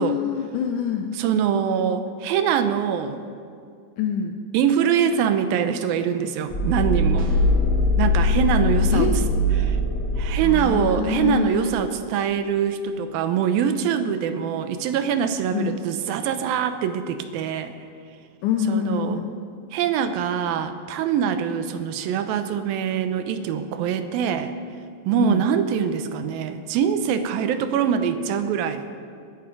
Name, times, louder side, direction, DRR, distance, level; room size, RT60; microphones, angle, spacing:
voice 1, 0.0-1.1 4.0-4.4 8.9-9.3 10.4-11.7 15.5-15.8 18.4-19.3 25.2-25.4, left 8 dB, 80° left, 4 dB, 1.9 m, -25 dB
voice 2, 1.1-3.2 4.5-7.3 8.0-9.1 9.6-9.8 10.2-17.7 18.7-19.2 19.7-24.5 25.1-28.9, right 8 dB, 90° right, 9 dB, 2.6 m, -23 dB
sound 1, 6.5-11.4, left 1 dB, 40° left, 1.3 m, -22 dB
sound 2, 7.2-7.7, right 4 dB, 60° right, 2.4 m, -41 dB
20.0 x 10.0 x 4.7 m, 2.3 s
omnidirectional pair, 4.1 m